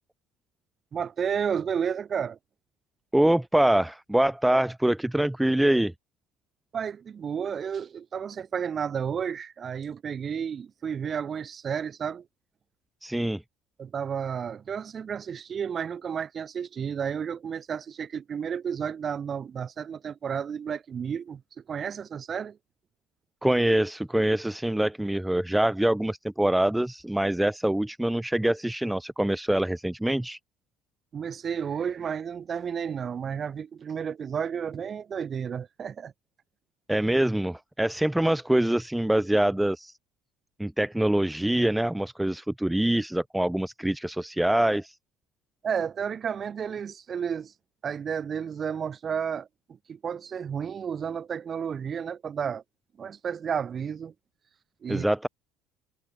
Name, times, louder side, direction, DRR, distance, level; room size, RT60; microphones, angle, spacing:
voice 1, 0.9-2.4 6.7-12.2 13.8-21.4 21.7-22.6 31.1-36.1 45.6-47.5 47.8-49.5 49.9-52.6 53.0-54.1 54.8-55.1, right 7 dB, 35° right, 4.2 m, -32 dB
voice 2, 3.1-5.9 13.0-13.4 23.4-30.4 36.9-39.9 40.6-44.9 54.9-55.3, right 1 dB, 5° right, 1.5 m, -24 dB
cardioid pair, 120°, 0 cm